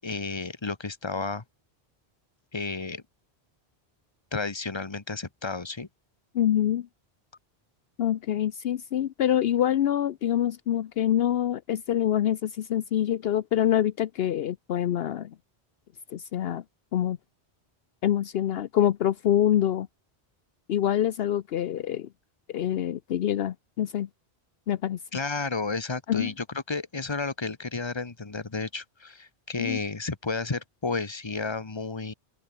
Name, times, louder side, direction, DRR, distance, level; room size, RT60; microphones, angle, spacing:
voice 1, 0.0-1.4 2.5-3.0 4.3-5.9 25.1-32.1, left 4 dB, 25° left, 1.3 m, -32 dB
voice 2, 6.3-6.9 8.0-15.3 16.1-16.6 16.9-17.2 18.0-19.9 20.7-22.1 22.5-24.1 24.7-25.0 26.1-26.3 29.6-29.8, left 11 dB, 70° left, 0.8 m, -25 dB
open air
omnidirectional pair, 1.1 m